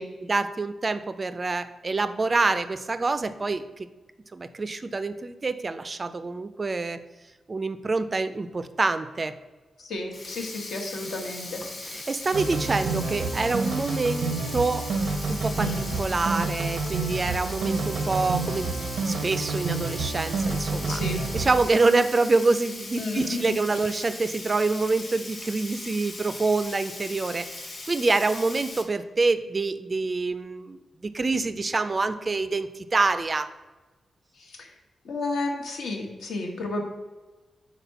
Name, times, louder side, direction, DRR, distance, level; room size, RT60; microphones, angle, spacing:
voice 1, 0.2-3.9 4.3-7.0 7.5-9.3 11.8-14.9 15.3-15.7 16.0-18.7 19.0-21.0 21.3-33.5, right 3 dB, 30° right, 11 dB, 0.3 m, -26 dB
voice 2, 9.8-11.6 15.6-15.9 20.9-21.2 23.0-23.6 34.5-34.7 35.0-36.8, left 2 dB, 75° left, 2 dB, 1.1 m, -32 dB
Sink (filling or washing), 10.0-28.8, left 2 dB, 40° left, 0.8 m, -39 dB
sound 1, 12.3-21.7, right 3 dB, 85° right, 0.5 m, -29 dB
4.3 x 4.1 x 5.5 m, 1.2 s
wide cardioid pair, 135°, 0 cm